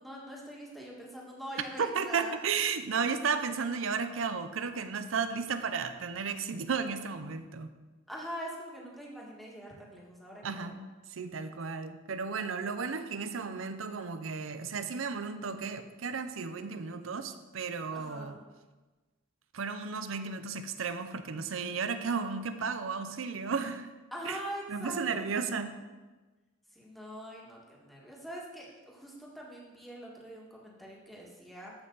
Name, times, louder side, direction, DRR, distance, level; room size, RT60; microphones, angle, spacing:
voice 1, 0.0-2.3 8.1-10.8 16.6-17.0 17.9-18.4 24.1-25.3 26.7-31.7, equal, ahead, -4 dB, 1.8 m, -43 dB
voice 2, 1.8-7.7 10.4-10.8 11.1-18.3 19.5-23.9 24.2-24.4 24.7-25.7, right 5 dB, 85° right, 9 dB, 0.6 m, -34 dB
14.0 x 5.6 x 4.0 m, 1.2 s
head